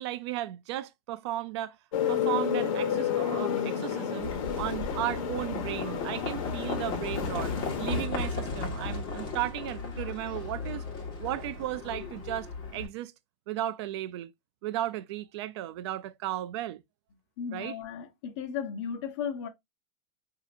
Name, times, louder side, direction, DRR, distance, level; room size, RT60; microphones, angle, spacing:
voice 1, 0.0-1.8 2.1-7.5 7.8-10.8 11.2-13.1 13.5-14.3 14.6-16.8 17.5-17.8, right 14 dB, 55° right, 0.4 m, -35 dB
sound 1, 1.9-8.0, left 8 dB, 85° left, 0.9 m, -31 dB
Livestock farm animals working animals, 4.2-12.9, left 3 dB, 30° left, 1.3 m, -35 dB
voice 2, 17.4-19.5, left 7 dB, 55° left, 0.8 m, -35 dB
5.1 x 2.8 x 2.4 m
supercardioid pair, 165°, 17 cm